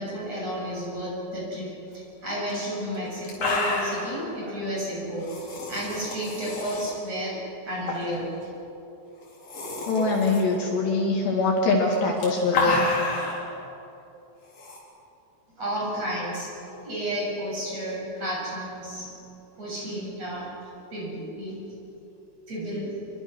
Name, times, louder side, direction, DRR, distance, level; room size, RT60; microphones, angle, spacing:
voice 1, 0.0-5.3 5.7-8.3 15.6-16.5 16.8-19.1 19.6-20.6 20.9-21.6 22.5-23.0, equal, 30° right, -5 dB, 8.7 m, -32 dB
sound 1, 2.5-2.6 2.9-3.0 3.2-4.1 5.2-6.9 7.8-8.2 8.5-8.6 9.2-10.4 11.8-13.4 14.5-14.8, left 3 dB, 45° left, 5.4 m, -29 dB
voice 2, 9.9-12.9, left 3 dB, 65° left, 0 dB, 4.0 m, -23 dB
28.0 x 23.5 x 6.2 m, 2.8 s
omnidirectional pair, 5.8 m